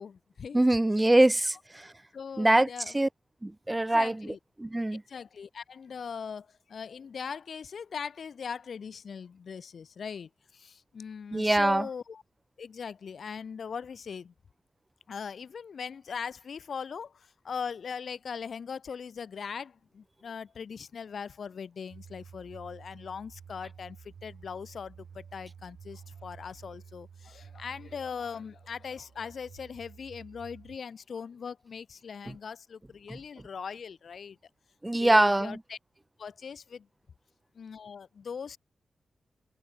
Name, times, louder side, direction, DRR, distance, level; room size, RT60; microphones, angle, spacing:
voice 1, 0.0-0.6 2.1-3.0 3.9-4.4 4.9-12.2 12.6-14.3 15.1-34.4 35.0-35.8 36.2-36.9 37.5-38.6, left 6 dB, 65° left, 0.6 m, -40 dB
voice 2, 0.5-1.9 2.4-2.7 2.9-3.1 3.4-4.2 4.6-5.0 11.3-11.9 33.1-33.2 34.8-35.6, right 1 dB, 15° right, 0.5 m, -23 dB
sound 1, 21.9-30.8, right 7 dB, 70° right, 2.3 m, -51 dB
wide cardioid pair, 100°, 0 cm